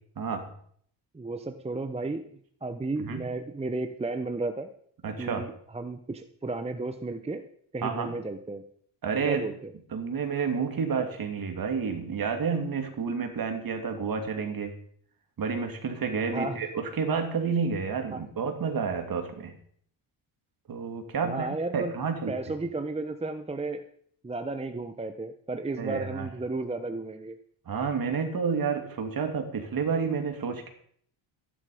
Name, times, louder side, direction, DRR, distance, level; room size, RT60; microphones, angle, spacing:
voice 1, 0.2-0.5 3.0-3.2 5.0-5.5 7.8-8.1 9.0-9.4 9.9-14.7 15.4-19.5 20.7-21.5 21.7-22.3 25.8-26.3 27.7-30.7, right 5 dB, 45° right, 5 dB, 2.9 m, -30 dB
voice 2, 1.1-2.3 2.6-4.7 5.2-7.5 7.7-8.6 9.2-9.7 16.3-16.6 18.1-18.2 21.2-21.9 22.3-23.9 24.2-27.4, right 2 dB, 15° right, 8 dB, 0.9 m, -33 dB
14.5 x 11.0 x 5.1 m, 0.63 s
cardioid pair, 115°, 47 cm